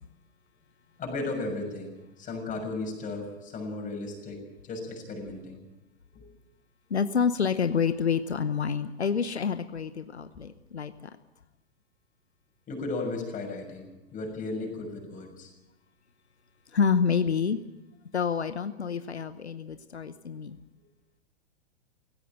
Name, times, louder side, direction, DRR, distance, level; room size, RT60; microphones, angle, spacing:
voice 1, 1.0-5.6 6.1-6.2 12.7-15.5, left 2 dB, 25° left, 2 dB, 6.7 m, -35 dB
voice 2, 6.9-11.1 16.7-17.6 18.1-20.6, left 6 dB, 85° left, 12 dB, 0.9 m, -28 dB
17.0 x 17.0 x 9.1 m, 1.0 s
figure-of-eight pair, 105°, 32 cm